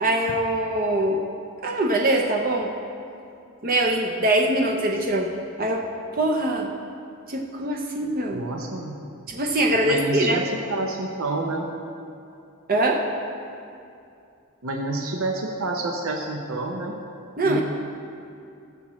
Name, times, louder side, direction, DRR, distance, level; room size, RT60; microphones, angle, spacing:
voice 1, 0.0-1.2 1.6-2.7 3.6-5.3 5.6-5.8 6.1-6.7 7.3-8.4 9.3-10.4 12.7-13.0 17.4-17.6, right 1 dB, 40° right, 0 dB, 0.7 m, -23 dB
voice 2, 8.3-9.0 9.8-11.7 14.6-16.9 17.4-17.6, right 2 dB, 70° right, 1 dB, 0.8 m, -28 dB
17.0 x 7.3 x 3.2 m, 2.5 s
head